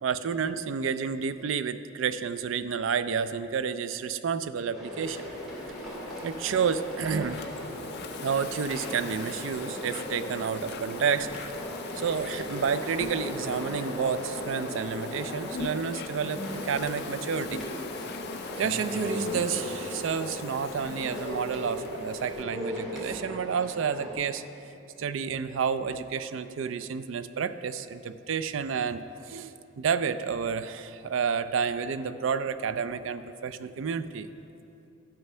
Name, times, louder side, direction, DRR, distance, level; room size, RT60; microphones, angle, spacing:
voice 1, 0.0-5.2 6.2-7.4 8.2-11.3 12.0-17.6 18.6-24.4 25.0-34.3, right 6 dB, 65° right, 13 dB, 0.4 m, -30 dB
sound 1, 4.7-24.1, equal, ahead, 2.3 m, -38 dB
Insect, 5.0-22.4, left 4 dB, 50° left, 0.5 m, -40 dB
11.0 x 7.0 x 5.5 m, 2.8 s
head